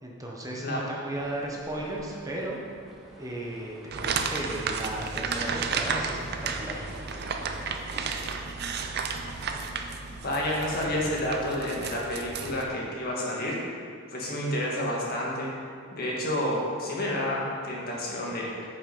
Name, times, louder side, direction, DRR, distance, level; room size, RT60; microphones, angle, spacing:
voice 1, 0.0-2.6 3.2-6.9, right 1 dB, 15° right, -2 dB, 0.9 m, -35 dB
sound 1, 1.1-11.0, equal, ahead, 1.3 m, -48 dB
sound 2, 3.9-12.6, right 5 dB, 55° right, 0.6 m, -33 dB
voice 2, 10.2-13.6 14.1-15.5 15.9-18.7, left 1 dB, 50° left, -4 dB, 1.9 m, -30 dB
8.6 x 5.8 x 5.3 m, 2.3 s
head